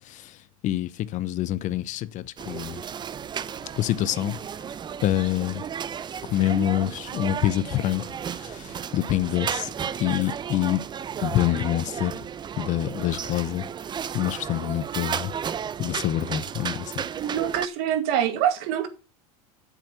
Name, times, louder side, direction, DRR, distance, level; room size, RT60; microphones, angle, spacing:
voice 1, 0.0-2.8 3.8-4.4 5.0-5.6 6.2-9.7 10.0-10.8 11.2-12.3 12.6-13.7 14.1-15.4 15.8-17.0, left 13 dB, 40° left, 0.8 m, -26 dB
sound 1, 2.4-17.7, right 8 dB, 25° right, 0.6 m, -34 dB
voice 2, 17.2-18.9, right 10 dB, 60° right, 2.1 m, -25 dB
8.0 x 7.6 x 6.8 m
supercardioid pair, 110°, 19 cm